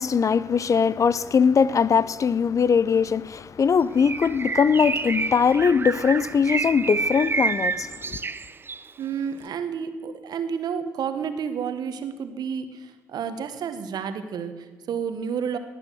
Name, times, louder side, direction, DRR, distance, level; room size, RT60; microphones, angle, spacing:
voice 1, 0.0-8.2, left 6 dB, 45° left, 0.6 m, -21 dB
Bird, 4.0-8.9, right 4 dB, 30° right, 0.6 m, -29 dB
voice 2, 9.0-15.6, right 7 dB, 65° right, 1.3 m, -30 dB
18.5 x 8.6 x 6.3 m
hypercardioid pair, 45°, 8 cm